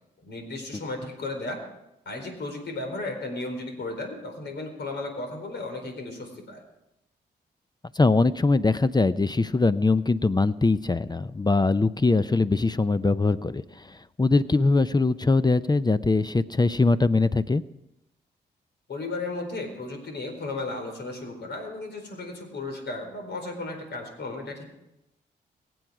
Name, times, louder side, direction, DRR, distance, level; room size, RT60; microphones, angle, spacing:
voice 1, 0.2-1.6 2.1-6.6 18.9-24.7, left 2 dB, 70° left, 4 dB, 4.3 m, -34 dB
voice 2, 7.9-17.6, left 3 dB, 20° left, 15 dB, 0.6 m, -22 dB
23.5 x 7.9 x 4.9 m, 0.89 s
supercardioid pair, 45°, 18 cm